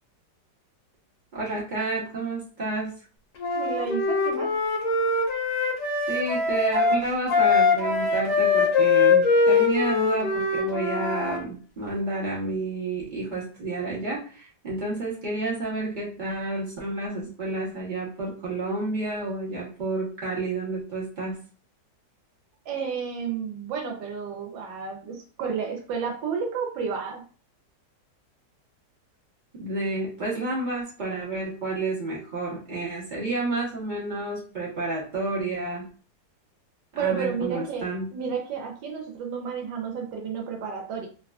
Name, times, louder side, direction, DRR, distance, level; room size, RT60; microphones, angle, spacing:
voice 1, 1.3-2.9 6.1-21.4 29.6-35.8 36.9-38.1, right 2 dB, 40° right, -5 dB, 0.7 m, -30 dB
Wind instrument woodwind instrument, 3.4-11.4, left 4 dB, 60° left, 0.9 m, -22 dB
voice 2, 3.5-4.6 22.7-27.2 36.9-41.1, right 6 dB, 85° right, 1 dB, 1.3 m, -31 dB
3.1 x 2.3 x 2.3 m, 0.39 s
omnidirectional pair, 1.9 m